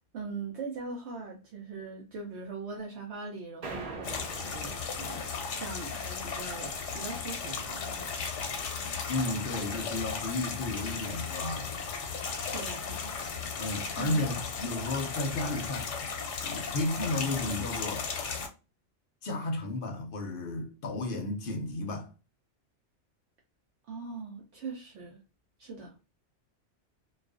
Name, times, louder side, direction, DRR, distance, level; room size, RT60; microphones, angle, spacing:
voice 1, 0.1-8.1 12.4-13.2 14.0-14.2 23.9-25.2 25.6-25.9, right 4 dB, 70° right, 0.9 m, -41 dB
sound 1, 3.6-6.0, right 3 dB, 50° right, 0.5 m, -43 dB
sound 2, 4.0-18.5, left 5 dB, 90° left, 0.9 m, -36 dB
voice 2, 9.1-11.7 13.6-15.9 16.4-18.1 19.2-22.1, left 2 dB, 60° left, 0.6 m, -33 dB
2.4 x 2.2 x 2.3 m
omnidirectional pair, 1.2 m